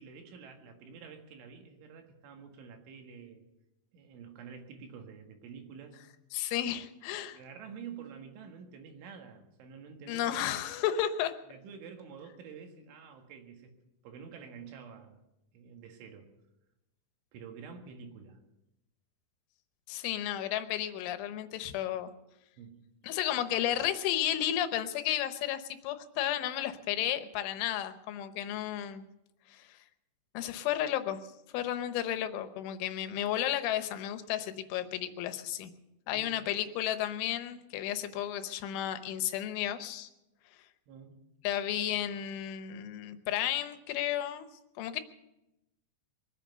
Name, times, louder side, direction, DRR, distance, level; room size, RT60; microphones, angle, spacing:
voice 1, 0.0-3.4 3.9-6.0 7.3-10.3 11.5-13.7 14.0-15.2 15.5-16.3 17.3-18.4 22.6-22.8 36.1-36.4 40.9-41.2, right 6 dB, 85° right, 4 dB, 4.2 m, -48 dB
voice 2, 6.3-7.4 10.1-11.3 19.9-22.1 23.0-29.0 29.5-29.7 30.4-31.2 31.5-35.7 36.1-40.1 41.4-44.5 44.8-45.0, left 11 dB, 85° left, 10 dB, 3.4 m, -33 dB
23.0 x 8.7 x 6.8 m, 0.93 s
omnidirectional pair, 5.3 m